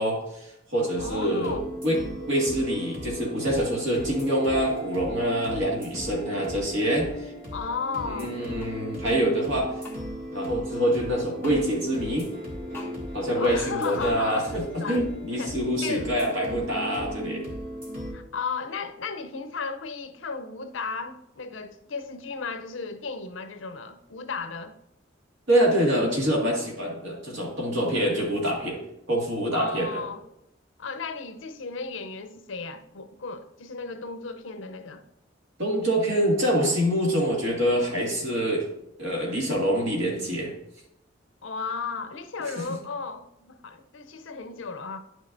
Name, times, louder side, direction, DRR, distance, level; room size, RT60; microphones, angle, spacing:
voice 1, 0.0-2.0 2.3-7.3 8.1-9.7 10.3-12.3 13.1-17.5 25.5-28.8 29.1-30.0 35.6-38.7 39.0-40.5 42.4-42.7, equal, 70° right, 2.0 m, -25 dB
voice 2, 1.0-1.7 7.5-8.4 13.4-14.5 14.8-16.1 18.1-24.7 29.5-30.2 30.8-35.0 41.4-45.0, left 4 dB, 75° left, 0.6 m, -35 dB
sound 1, 1.0-18.1, equal, 45° right, 2.4 m, -37 dB
sound 2, 8.6-8.8 9.8-10.0 11.4-11.6 12.7-12.9 14.0-14.2, left 3 dB, 10° left, 1.7 m, -41 dB
10.0 x 6.4 x 2.6 m
head